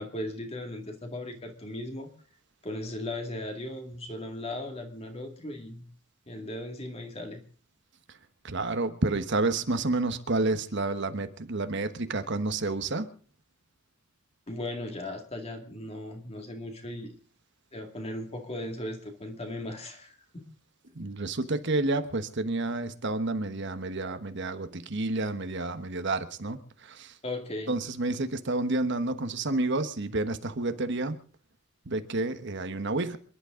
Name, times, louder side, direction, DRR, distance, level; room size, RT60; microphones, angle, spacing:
voice 1, 0.0-2.1 2.6-5.8 6.3-7.4 14.5-17.2 17.7-20.4 27.2-27.8, left 1 dB, 30° left, 5 dB, 2.2 m, -37 dB
voice 2, 8.4-13.1 20.9-27.1 27.7-31.2 31.9-33.2, right 2 dB, 55° right, 10 dB, 1.2 m, -30 dB
27.5 x 11.5 x 3.8 m, 0.42 s
head